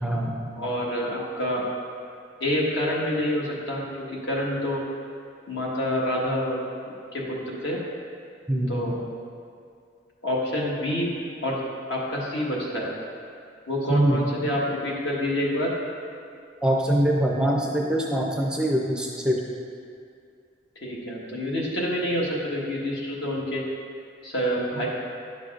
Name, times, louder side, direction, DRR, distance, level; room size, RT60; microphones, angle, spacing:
voice 1, 0.0-0.4 8.5-8.8 13.9-14.5 16.6-19.4, right 1 dB, 5° right, -1 dB, 0.5 m, -24 dB
voice 2, 0.5-1.6 2.4-3.8 4.3-4.8 5.5-6.6 7.1-7.8 8.7-9.0 10.2-11.1 11.4-11.6 11.9-12.9 13.7-15.7 20.8-23.6 24.2-24.9, equal, 65° left, -4 dB, 1.4 m, -27 dB
10.5 x 6.5 x 2.5 m, 2.3 s
head